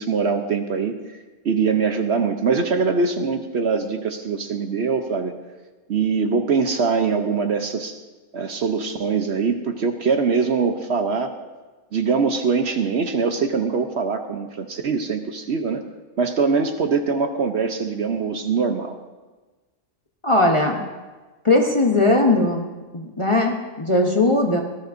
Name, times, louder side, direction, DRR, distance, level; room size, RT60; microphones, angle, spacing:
voice 1, 0.0-5.3 5.9-8.0 8.3-11.3 11.9-15.8 16.2-19.0, right 5 dB, 55° right, 6 dB, 0.9 m, -23 dB
voice 2, 20.2-20.8 21.4-22.7 22.9-24.6, left 2 dB, 25° left, 1 dB, 0.8 m, -19 dB
18.5 x 13.5 x 2.6 m, 1.3 s
omnidirectional pair, 1.4 m